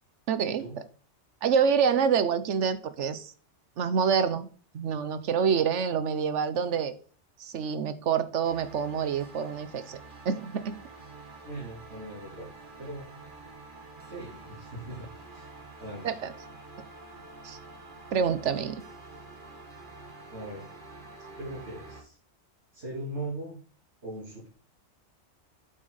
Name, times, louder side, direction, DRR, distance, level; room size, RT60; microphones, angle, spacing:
voice 1, 0.3-0.6 1.4-3.3 3.8-4.5 4.7-6.9 7.4-10.0 10.2-10.7 16.0-16.3 17.4-17.6 18.1-18.8, right 6 dB, 85° right, 13 dB, 1.2 m, -27 dB
sound 1, 8.4-22.0, right 3 dB, 45° right, 1.8 m, -47 dB
voice 2, 11.5-12.5 12.8-13.1 14.1-15.1 15.3-15.5 15.8-16.1 20.3-20.7 21.3-22.2 22.7-23.6 24.0-24.5, right 1 dB, 70° right, -7 dB, 3.6 m, -39 dB
8.1 x 6.2 x 3.9 m, 0.41 s
omnidirectional pair, 1.2 m